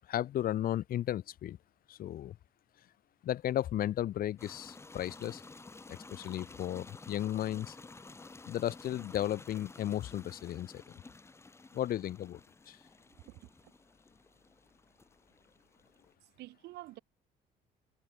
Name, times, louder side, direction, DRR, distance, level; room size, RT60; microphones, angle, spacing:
voice 1, 0.1-1.6 1.9-2.3 3.2-5.4 5.9-7.8 8.4-10.8 11.7-12.4 12.7-12.8, left 12 dB, 60° left, 1.4 m, -34 dB
sound 1, 4.4-16.1, left 3 dB, 15° left, 1.3 m, -53 dB
voice 2, 13.2-13.7 16.2-17.0, right 18 dB, 80° right, 2.7 m, -49 dB
cardioid pair, 110°, 17 cm